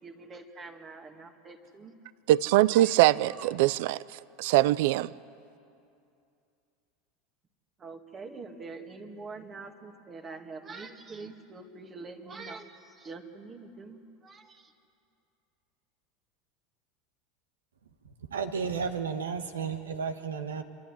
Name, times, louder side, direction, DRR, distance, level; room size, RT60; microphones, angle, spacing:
voice 1, 0.0-1.9 2.7-2.9 3.2-3.5 7.8-14.7, right 4 dB, 30° right, 2.1 m, -45 dB
voice 2, 2.3-5.1, right 15 dB, 65° right, 0.4 m, -23 dB
voice 3, 18.3-20.6, right 6 dB, 85° right, 1.3 m, -32 dB
27.0 x 11.5 x 9.9 m
hypercardioid pair, 85°, 0 cm